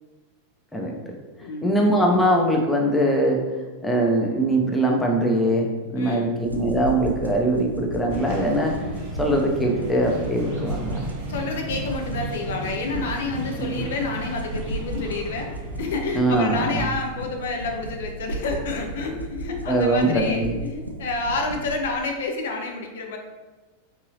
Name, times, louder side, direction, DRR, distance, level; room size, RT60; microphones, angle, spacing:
voice 1, 0.7-3.4 3.8-8.8 9.2-11.1 13.6-13.8 16.1-16.9 19.7-20.6, right 1 dB, 5° left, 0 dB, 0.5 m, -22 dB
voice 2, 1.4-1.7 5.9-6.4 11.3-15.5 15.8-23.2, left 3 dB, 60° left, 2 dB, 0.4 m, -29 dB
sound 1, 6.4-21.8, right 2 dB, 85° right, 0.4 m, -35 dB
sound 2, 8.1-16.5, equal, 50° right, 0.7 m, -35 dB
3.7 x 2.7 x 2.6 m, 1.2 s
figure-of-eight pair, 90°, 0 cm